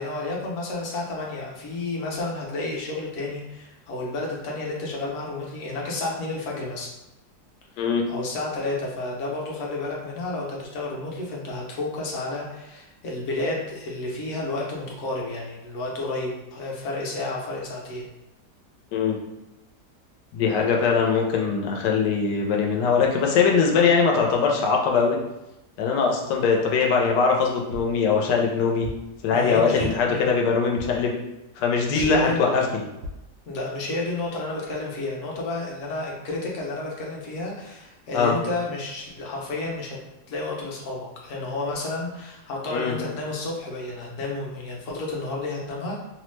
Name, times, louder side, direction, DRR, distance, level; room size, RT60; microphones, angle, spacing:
voice 1, 0.0-6.9 7.7-18.0 29.3-30.2 31.9-32.7 33.5-40.0 40.3-46.0, left 2 dB, 60° left, -2 dB, 0.9 m, -31 dB
voice 2, 20.3-25.2 25.8-28.9 29.2-31.1 31.6-32.8 38.1-38.3 42.7-42.9, left 5 dB, 85° left, 0 dB, 1.2 m, -21 dB
sound 1, 27.7-28.0 28.8-29.1 29.8-30.2 30.8-31.1 32.0-32.3 33.0-33.3 33.9-34.0 34.3-34.4, equal, 80° right, 1.2 m, -37 dB
3.0 x 2.0 x 3.1 m, 0.95 s
omnidirectional pair, 1.8 m